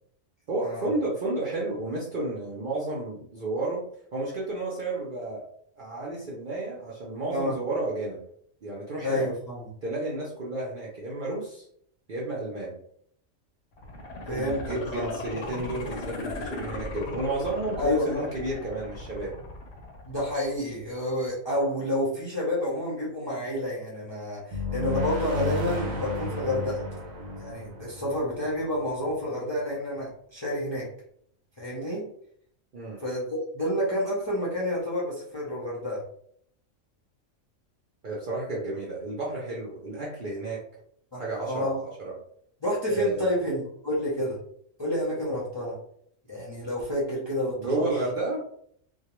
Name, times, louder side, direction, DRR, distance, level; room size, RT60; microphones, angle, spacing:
voice 1, 0.5-3.8 4.1-5.4 5.8-8.2 8.6-9.3 9.8-11.7 12.1-12.8 14.3-19.4 32.7-33.0 38.0-40.6 41.1-42.1 42.9-43.4 47.6-48.4, right 2 dB, 55° right, -5 dB, 0.6 m, -32 dB
voice 2, 9.0-9.7 14.3-15.1 17.8-18.3 20.1-26.8 27.4-30.8 31.6-32.0 33.0-36.0 41.1-41.8 42.6-44.4 44.8-45.8 46.3-47.9, left 1 dB, 30° left, -6 dB, 0.5 m, -29 dB
sound 1, 13.7-20.7 21.1-21.2, left 2 dB, 65° left, 0.8 m, -37 dB
sound 2, 24.5-29.1, left 2 dB, 90° right, 1.0 m, -32 dB
2.3 x 2.2 x 2.9 m, 0.65 s
omnidirectional pair, 1.4 m